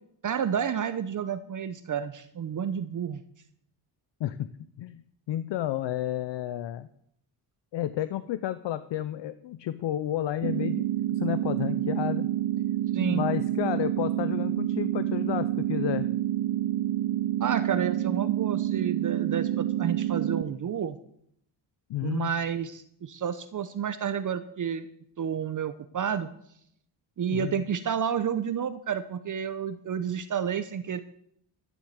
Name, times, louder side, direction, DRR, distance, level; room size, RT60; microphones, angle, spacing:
voice 1, 0.2-3.2 12.9-13.2 17.4-21.0 22.0-24.9 25.2-26.3 27.2-31.0, right 8 dB, 45° right, 11 dB, 0.8 m, -30 dB
voice 2, 4.2-4.5 4.8-6.9 7.7-10.8 11.1-12.3 13.0-16.1 21.9-22.3 27.3-27.6, left 12 dB, 70° left, 13 dB, 0.7 m, -31 dB
sound 1, 10.4-20.4, right 13 dB, 80° right, 0.8 m, -28 dB
13.0 x 7.2 x 8.0 m, 0.70 s
cardioid pair, 110°, 45 cm